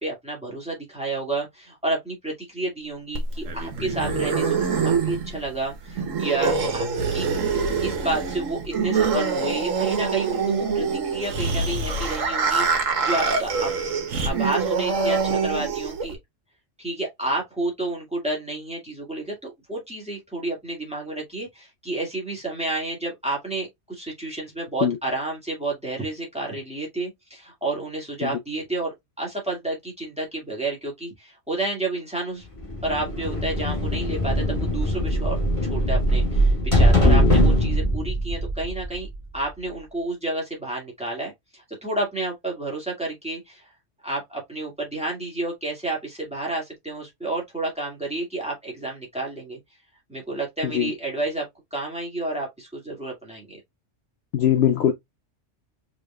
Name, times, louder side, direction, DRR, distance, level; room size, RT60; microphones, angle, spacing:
voice 1, 0.0-7.3 7.8-13.7 14.2-16.2 16.8-32.5 32.8-39.1 39.3-43.7 44.0-49.6 50.1-51.5 51.7-53.6, right 2 dB, 5° right, 2.1 m, -30 dB
sound 1, 3.1-16.1, right 5 dB, 90° right, 1.5 m, -25 dB
Breathing, 3.3-4.2 6.9-8.4 10.6-10.7 11.2-12.3 13.2-14.3, right 1 dB, 70° right, 1.2 m, -32 dB
sound 2, 32.6-39.4, equal, 25° left, 1.6 m, -21 dB
voice 2, 37.0-37.3 50.6-50.9 54.3-54.9, left 9 dB, 65° left, 0.7 m, -21 dB
4.8 x 3.7 x 2.3 m
omnidirectional pair, 1.3 m